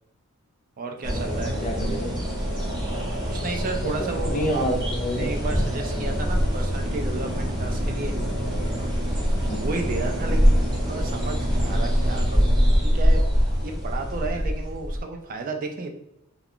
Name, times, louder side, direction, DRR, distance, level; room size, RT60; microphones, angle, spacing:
voice 1, 0.8-1.6 3.2-4.7 5.1-8.1 9.5-10.6 10.9-13.3 13.6-15.9, right 3 dB, 40° right, 4 dB, 0.3 m, -33 dB
sound 1, 1.0-15.0, equal, 20° right, 0.7 m, -24 dB
voice 2, 1.6-2.2 4.3-5.3 5.9-6.1 9.3-9.6, equal, 35° left, 2 dB, 0.5 m, -28 dB
2.3 x 2.3 x 3.5 m, 0.86 s
head